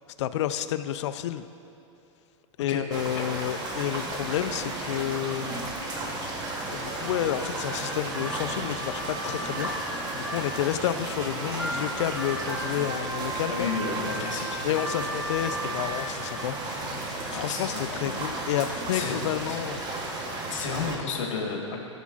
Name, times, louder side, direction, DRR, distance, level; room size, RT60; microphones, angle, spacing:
voice 1, 0.2-1.5 2.6-5.7 6.7-13.7 14.6-16.6 16.9-19.8, left 11 dB, 65° left, 12 dB, 0.4 m, -30 dB
sound 1, 2.9-21.0, right 2 dB, 25° right, 1.1 m, -34 dB
Harmonica, 7.0-10.5 11.0-16.1, right 1 dB, ahead, 0.8 m, -37 dB
voice 2, 13.5-14.6 17.3-18.2 18.7-19.1 19.4-19.6 20.5-21.8, left 5 dB, 85° left, 0 dB, 1.3 m, -32 dB
15.0 x 7.2 x 2.4 m, 2.9 s
hypercardioid pair, 140°, 16 cm